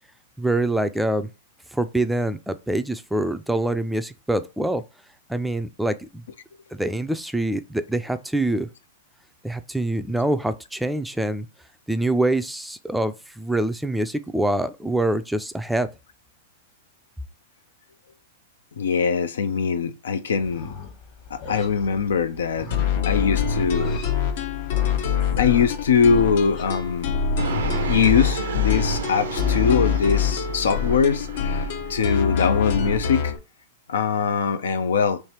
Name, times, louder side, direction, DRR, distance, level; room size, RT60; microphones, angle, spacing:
voice 1, 0.4-1.3 1.7-4.8 5.3-6.2 6.8-8.7 9.4-11.5 11.9-15.9, right 1 dB, 5° right, 0.3 m, -25 dB
voice 2, 18.8-20.7 21.3-22.7 23.1-24.0 25.0-25.1 25.4-27.1 27.9-31.6 31.9-33.3 33.9-35.2, left 6 dB, 90° left, 0.5 m, -22 dB
Livestock farm animals working animals, 20.4-27.7, left 4 dB, 45° left, 1.4 m, -40 dB
sound 1, 22.7-33.4, left 6 dB, 65° left, 0.8 m, -25 dB
Fixed-wing aircraft airplane, 27.4-32.8, right 7 dB, 85° right, 0.6 m, -34 dB
3.2 x 3.1 x 4.3 m
hypercardioid pair, 135°, 0 cm